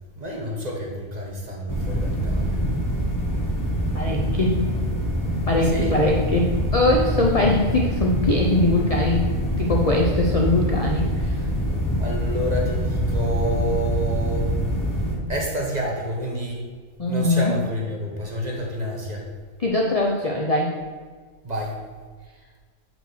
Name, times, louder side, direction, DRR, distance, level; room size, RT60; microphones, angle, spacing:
voice 1, 0.2-2.6 5.7-5.9 12.0-14.5 15.3-16.6 17.1-19.2 21.4-21.8, right 1 dB, 30° right, -2 dB, 1.2 m, -28 dB
sound 1, 1.7-15.2, equal, 15° left, 0.9 m, -25 dB
voice 2, 3.9-4.6 5.5-11.5 17.0-17.6 19.6-20.8, left 2 dB, 45° left, -1 dB, 0.5 m, -22 dB
5.6 x 4.5 x 6.3 m, 1.5 s
omnidirectional pair, 1.5 m